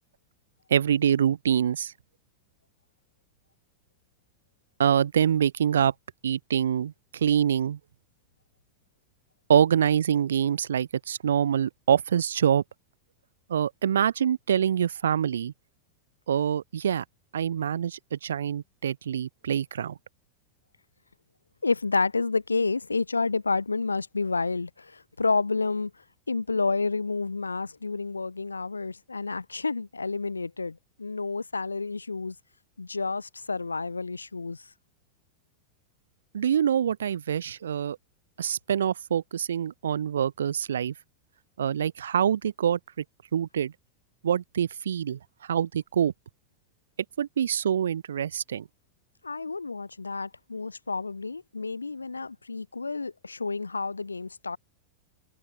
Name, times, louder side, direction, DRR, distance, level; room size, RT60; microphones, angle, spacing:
voice 1, 0.7-1.9 4.8-5.9 6.2-7.8 9.5-12.6 13.5-15.5 16.3-17.0 17.3-20.0 36.3-38.0 38.4-40.9 41.6-43.0 43.3-43.7 44.2-46.1 47.2-48.7, right 9 dB, 65° right, 1.6 m, -25 dB
voice 2, 21.6-25.9 26.3-32.3 32.8-34.6 49.2-54.6, left 4 dB, 80° left, 4.8 m, -30 dB
figure-of-eight pair, 90°, 0 cm